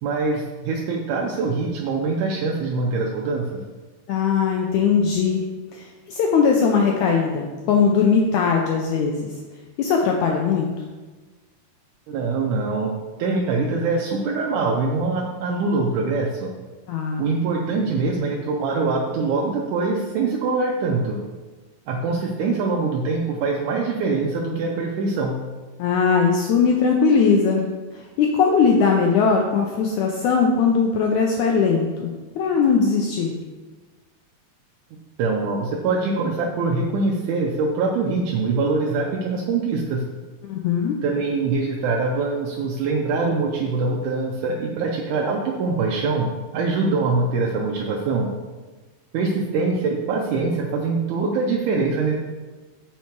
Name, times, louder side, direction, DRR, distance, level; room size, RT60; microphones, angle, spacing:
voice 1, 0.0-3.5 12.1-16.5 17.2-21.2 21.9-25.4 35.2-40.0 41.0-48.3 49.1-52.1, right 3 dB, 75° right, -1 dB, 1.9 m, -23 dB
voice 2, 4.1-5.4 5.7-9.3 9.8-10.7 16.9-17.2 25.8-27.6 27.9-33.3 40.5-41.0, left 5 dB, 85° left, 1 dB, 1.7 m, -20 dB
7.2 x 5.7 x 4.5 m, 1.3 s
omnidirectional pair, 4.2 m